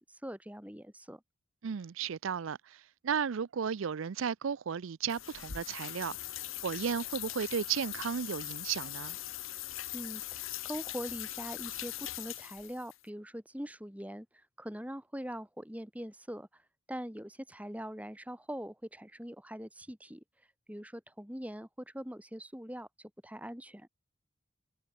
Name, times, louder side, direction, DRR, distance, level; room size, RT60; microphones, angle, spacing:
voice 1, 0.1-1.2 9.9-16.6 16.9-20.2 20.7-23.9, equal, 5° right, 3.1 m, -43 dB
voice 2, 1.6-6.1 6.6-9.2, right 7 dB, 75° right, 0.5 m, -34 dB
sound 1, 5.1-13.0, left 14 dB, 75° left, 1.4 m, -41 dB
head